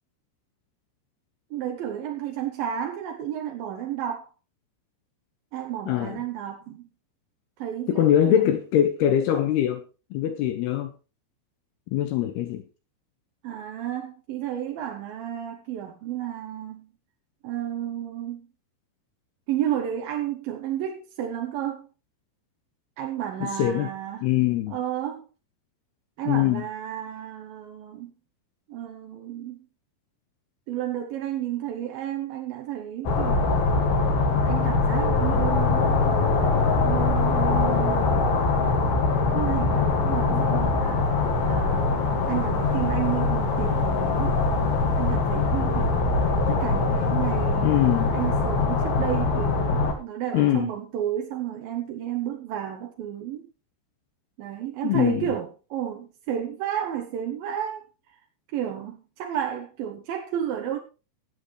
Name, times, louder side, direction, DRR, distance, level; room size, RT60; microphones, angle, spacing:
voice 1, 1.5-4.3 5.5-6.8 7.6-8.4 13.4-16.9 17.4-18.5 19.5-21.9 23.0-24.3 24.7-25.2 26.2-28.1 28.7-29.6 30.7-33.5 34.4-36.0 36.8-38.2 39.3-44.4 45.0-46.0 46.5-47.8 48.1-53.5 54.4-57.8 58.5-60.8, right 10 dB, 75° right, 2.3 m, -32 dB
voice 2, 5.9-6.2 7.9-9.8 10.1-10.9 11.9-12.6 23.4-23.9 24.2-24.8 26.3-26.6 47.6-48.1 50.3-50.7 54.8-55.3, left 11 dB, 75° left, 2.4 m, -23 dB
sound 1, 33.1-49.9, left 3 dB, 60° left, 3.6 m, -23 dB
20.0 x 8.0 x 3.3 m
omnidirectional pair, 5.4 m